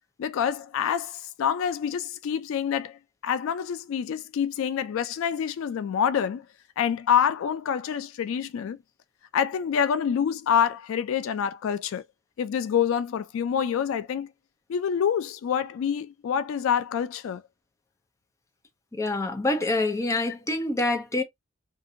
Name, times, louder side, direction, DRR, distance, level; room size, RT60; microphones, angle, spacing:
voice 1, 0.2-6.5 6.8-8.8 9.3-12.0 12.4-14.3 14.7-17.4, left 8 dB, 70° left, 0.3 m, -26 dB
voice 2, 18.9-21.2, left 2 dB, 15° left, 0.5 m, -26 dB
2.7 x 2.5 x 2.6 m
head